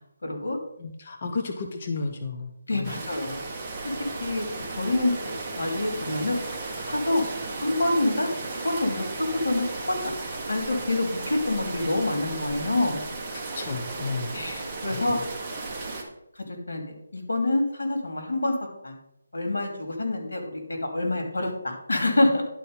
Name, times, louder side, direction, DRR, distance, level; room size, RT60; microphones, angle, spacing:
voice 1, 0.2-0.6 2.7-3.4 4.2-4.5 4.8-5.1 5.5-6.4 6.9-7.2 7.6-9.1 9.4-10.0 10.5-13.0 14.3-15.2 16.3-18.5 18.8-19.0 19.3-22.4, left 2 dB, 85° left, 3 dB, 2.7 m, -26 dB
voice 2, 0.8-3.0 13.3-14.4 14.9-15.0, left 4 dB, 30° left, 4 dB, 0.7 m, -33 dB
sound 1, 2.8-16.0, right 3 dB, 10° right, 1.2 m, -35 dB
11.0 x 4.4 x 5.2 m, 0.83 s
hypercardioid pair, 175°, 0 cm